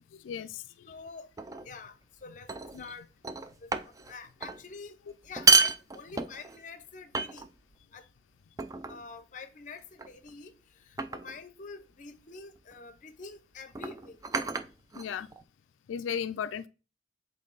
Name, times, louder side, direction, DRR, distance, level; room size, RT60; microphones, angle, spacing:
voice 1, 0.2-0.6 2.7-2.8 15.0-15.3 15.9-16.7, left 8 dB, 90° left, 0.3 m, -34 dB
voice 2, 0.8-1.3 1.6-2.5 2.8-3.1 3.6-3.7 4.1-7.5 7.9-8.1 8.9-14.3, left 4 dB, 40° left, 0.6 m, -46 dB
sound 1, 1.4-1.7 2.5-2.9 3.2-4.1 4.4-4.6 5.2-6.6 7.1-7.7 8.6-9.0 10.0-10.3 11.0-11.4 12.6-12.7 13.7-15.4, right 4 dB, 20° right, 0.3 m, -29 dB
7.3 x 3.7 x 3.9 m
head